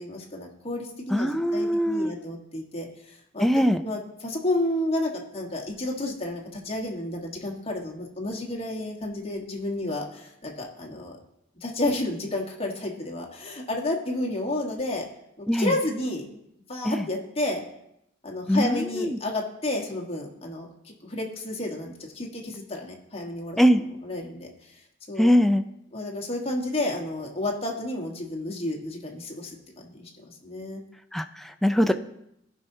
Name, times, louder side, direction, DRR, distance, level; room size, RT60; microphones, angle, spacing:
voice 1, 0.0-3.5 3.8-11.2 11.6-15.0 15.4-16.4 16.7-17.6 18.2-20.7 21.0-23.6 24.0-24.5 25.1-25.3 25.9-30.8, left 1 dB, 30° left, -1 dB, 1.4 m, -31 dB
voice 2, 1.1-2.2 3.4-3.8 15.5-15.8 16.8-17.1 18.5-19.2 23.6-23.8 25.2-25.6 31.1-31.9, equal, ahead, 7 dB, 0.4 m, -22 dB
16.5 x 5.6 x 2.7 m, 0.79 s
head